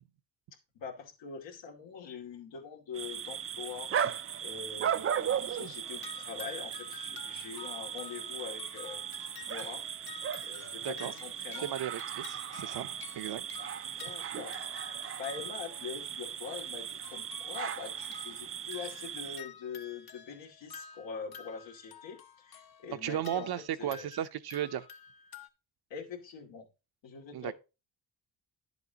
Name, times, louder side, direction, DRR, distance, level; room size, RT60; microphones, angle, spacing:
voice 1, 0.7-3.9 4.4-9.0 9.5-9.9 10.4-11.7 13.9-14.6 15.2-24.1 25.9-26.7 27.0-27.5, left 6 dB, 85° left, 2.5 m, -44 dB
sound 1, 2.9-19.4, right 8 dB, 35° right, 0.4 m, -37 dB
sound 2, 5.8-16.1 17.0-25.5, left 6 dB, 60° left, 1.3 m, -51 dB
voice 2, 10.8-11.1 11.6-13.5 23.0-24.9 27.3-27.5, right 11 dB, 60° right, 0.8 m, -35 dB
11.0 x 8.1 x 2.9 m
cardioid pair, 120°, 43 cm